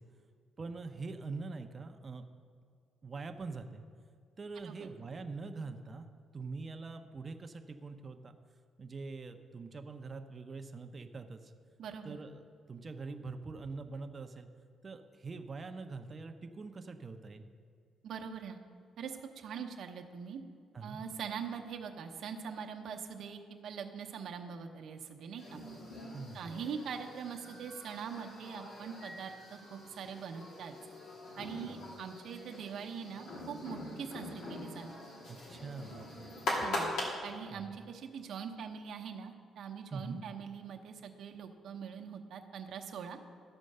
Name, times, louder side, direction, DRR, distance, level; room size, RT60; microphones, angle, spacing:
voice 1, 0.6-2.3 3.0-3.8 4.4-6.1 6.3-8.4 8.8-11.5 12.0-12.4 12.7-14.5 14.8-17.5 20.7-21.0 26.1-26.5 31.3-31.9 35.3-36.3 37.5-37.8 39.9-40.2, right 4 dB, 35° right, 7 dB, 0.7 m, -44 dB
voice 2, 11.8-12.2 18.0-18.6 19.0-20.4 20.8-25.6 26.3-30.8 31.4-35.1 36.5-36.9 37.2-43.2, right 7 dB, 70° right, 4 dB, 0.8 m, -43 dB
sound 1, 25.4-37.2, left 1 dB, 80° left, 2.3 m, -42 dB
12.5 x 4.5 x 6.5 m, 2.2 s
cardioid pair, 90°, 0 cm